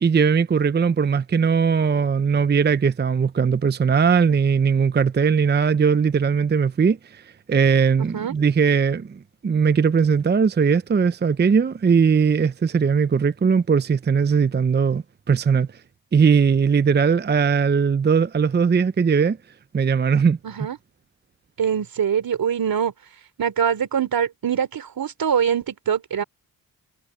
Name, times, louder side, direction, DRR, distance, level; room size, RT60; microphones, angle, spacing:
voice 1, 0.0-15.8 16.1-19.4 19.7-20.4, right 6 dB, 30° right, 0.6 m, -19 dB
voice 2, 20.4-20.8 21.6-22.9 23.4-26.2, right 8 dB, 70° right, 3.5 m, -23 dB
cardioid pair, 65°, 37 cm